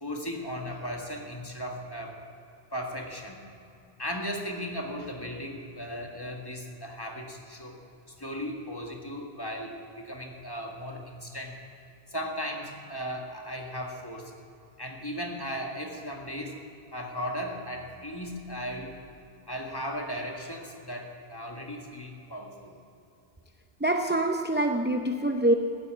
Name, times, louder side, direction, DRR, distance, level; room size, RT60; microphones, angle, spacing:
voice 1, 0.0-2.2 2.7-3.4 4.0-7.8 8.2-11.5 12.1-14.3 14.8-16.6 16.9-19.0 19.5-22.7, equal, 25° left, 1 dB, 1.7 m, -36 dB
voice 2, 23.8-25.5, right 1 dB, 15° right, 4 dB, 0.4 m, -25 dB
15.0 x 8.3 x 8.3 m, 2.7 s
omnidirectional pair, 1.0 m